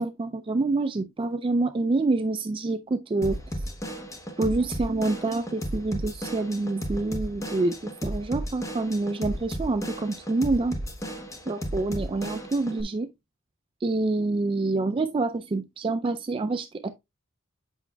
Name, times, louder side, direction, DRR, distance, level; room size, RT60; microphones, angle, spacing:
voice 1, 0.0-3.4 4.4-10.8 11.5-13.1 13.8-16.9, right 3 dB, 25° right, 0.3 m, -27 dB
Drum kit / Drum, 3.2-12.8, equal, 15° left, 1.0 m, -34 dB
8.1 x 5.6 x 2.2 m
head